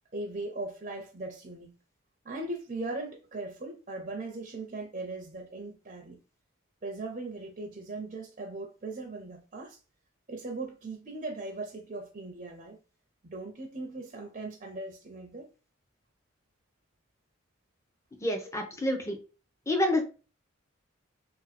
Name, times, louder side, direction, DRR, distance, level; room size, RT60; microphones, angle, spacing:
voice 1, 0.1-1.8 2.2-6.2 6.8-9.8 10.3-12.8 13.2-15.5, right 2 dB, 35° right, 0.5 m, -39 dB
voice 2, 18.2-19.2 19.7-20.0, left 1 dB, 15° left, 0.6 m, -28 dB
2.8 x 2.1 x 4.1 m
head